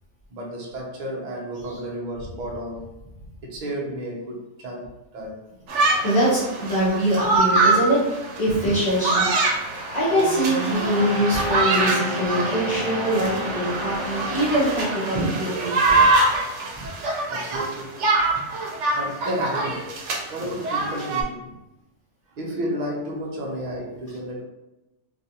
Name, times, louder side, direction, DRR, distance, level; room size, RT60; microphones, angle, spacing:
voice 1, 0.3-2.8 3.4-5.4 17.3-17.9 18.9-19.9 20.3-21.5 22.3-24.4, equal, 50° right, -1 dB, 0.6 m, -32 dB
sound 1, 5.7-21.2, right 3 dB, 80° right, 0.9 m, -24 dB
voice 2, 6.0-9.3 9.7-16.1, right 1 dB, 35° left, -11 dB, 0.9 m, -23 dB
Guitar, 10.1-14.9, left 3 dB, 80° left, 1.1 m, -33 dB
2.5 x 2.4 x 2.8 m, 0.96 s
omnidirectional pair, 1.2 m